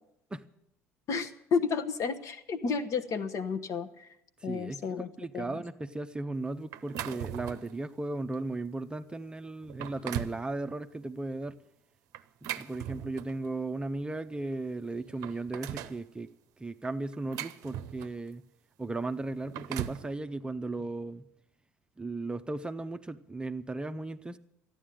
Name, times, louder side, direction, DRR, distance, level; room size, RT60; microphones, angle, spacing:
voice 1, 1.1-4.1 4.4-5.1 5.3-5.6, left 5 dB, 45° left, 1.2 m, -31 dB
voice 2, 4.4-4.8 5.2-11.6 12.4-16.3 16.6-18.4 18.8-21.2 22.0-24.4, right 2 dB, 15° right, 0.7 m, -36 dB
sound 1, 6.7-7.8 8.3-8.5 9.1-9.2 9.6-10.4 12.1-13.5 14.5-14.6 14.9-16.0 16.8-18.3 19.3-20.1, right 11 dB, 55° right, 0.7 m, -39 dB
14.0 x 10.0 x 9.0 m
figure-of-eight pair, 60°, 7 cm